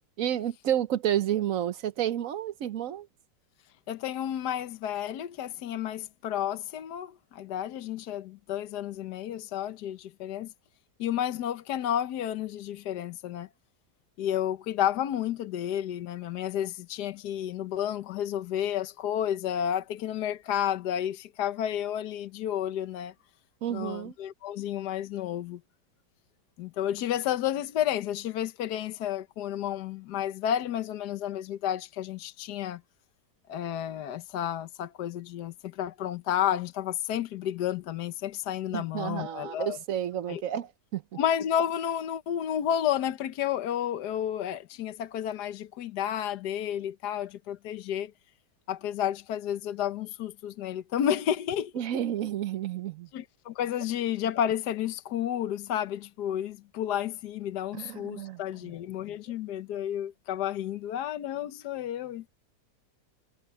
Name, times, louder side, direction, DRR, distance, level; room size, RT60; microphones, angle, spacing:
voice 1, 0.2-3.1 23.6-24.1 38.7-41.0 51.8-53.1 57.7-58.4, right 11 dB, 65° right, 1.0 m, -30 dB
voice 2, 3.9-10.5 11.0-13.5 14.2-23.1 23.7-25.6 26.6-32.8 33.5-39.8 40.3-40.4 41.1-48.1 48.7-51.7 53.1-62.3, left 10 dB, 75° left, 1.4 m, -31 dB
omnidirectional pair, 1.8 m